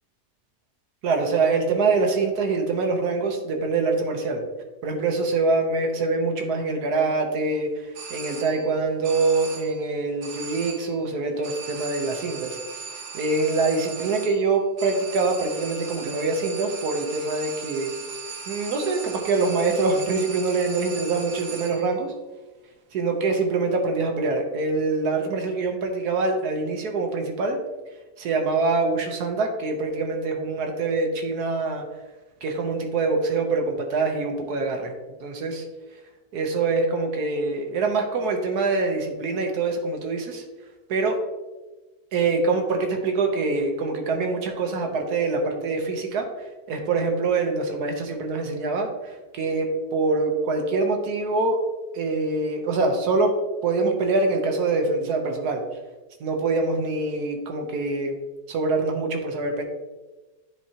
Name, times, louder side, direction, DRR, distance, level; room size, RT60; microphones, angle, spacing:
voice 1, 1.0-4.4 4.8-7.7 8.1-12.6 13.1-17.9 18.5-22.1 22.9-27.6 28.2-31.8 32.4-34.9 35.2-35.6 36.3-40.4 40.9-41.2 42.1-46.3 46.7-51.6 51.9-53.3 53.6-55.6 56.2-58.1 58.5-59.6, right 3 dB, 80° right, 3 dB, 1.4 m, -24 dB
sound 1, 7.9-8.8 9.0-9.9 10.2-11.0 11.4-22.0, right 5 dB, 65° right, 1.3 m, -38 dB
10.0 x 4.6 x 2.8 m, 1.2 s
omnidirectional pair, 1.6 m